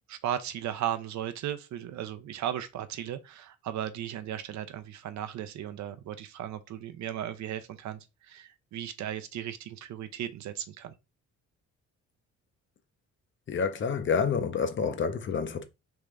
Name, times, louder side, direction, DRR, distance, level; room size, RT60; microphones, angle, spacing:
voice 1, 0.1-10.9, right 10 dB, 65° right, 0.6 m, -36 dB
voice 2, 13.5-15.6, left 6 dB, 40° left, 0.6 m, -28 dB
3.5 x 2.5 x 3.2 m
cardioid pair, 90°, 30 cm